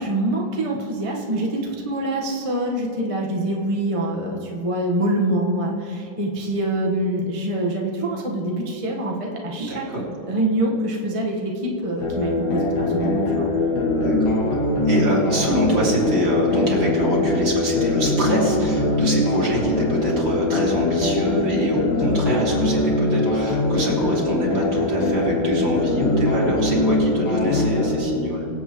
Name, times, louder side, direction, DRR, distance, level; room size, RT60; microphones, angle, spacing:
voice 1, 0.0-9.8 10.3-13.4, right 1 dB, 20° right, -2 dB, 1.0 m, -25 dB
voice 2, 9.6-10.0 13.9-14.2 14.9-28.5, right 1 dB, 65° right, -5 dB, 3.5 m, -25 dB
sound 1, 12.0-28.0, left 2 dB, 80° left, 2.6 m, -22 dB
24.5 x 8.1 x 3.0 m, 2.9 s
omnidirectional pair, 2.2 m